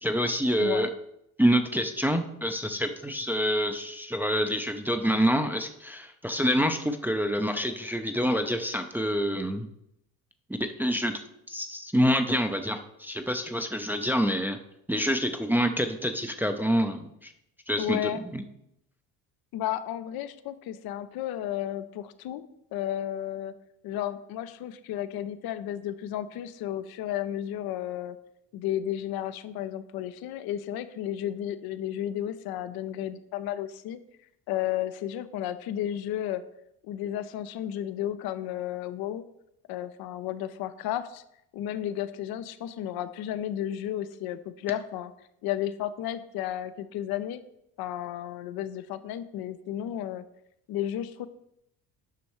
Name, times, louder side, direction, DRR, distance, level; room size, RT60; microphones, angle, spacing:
voice 1, 0.0-0.9 1.4-9.7 10.6-14.6 14.9-17.3 17.7-18.4, equal, 5° right, 6 dB, 0.6 m, -27 dB
voice 2, 17.8-18.2 19.5-22.4 22.7-23.5 23.8-28.2 28.5-34.0 34.5-36.4 36.8-39.2 39.7-41.2 41.5-45.1 45.4-47.4 47.8-50.3 50.7-51.3, left 11 dB, 50° left, 13 dB, 0.7 m, -33 dB
10.5 x 6.2 x 3.1 m, 0.79 s
hypercardioid pair, 65°, 46 cm